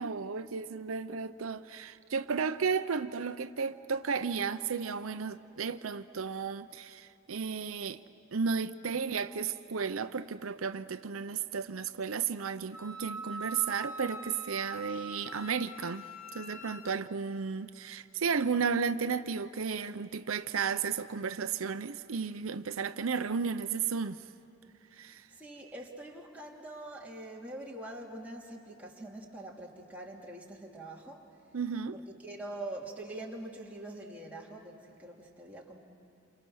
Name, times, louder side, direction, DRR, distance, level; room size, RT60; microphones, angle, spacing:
voice 1, 0.0-8.0 8.3-16.1 16.3-24.2 24.9-25.2 31.5-32.0, right 6 dB, 90° right, 0.7 m, -33 dB
Wind instrument woodwind instrument, 12.7-17.0, right 2 dB, 90° left, 1.4 m, -43 dB
voice 2, 25.3-31.3 31.9-35.8, right 1 dB, 5° right, 2.9 m, -44 dB
29.0 x 27.5 x 6.4 m
head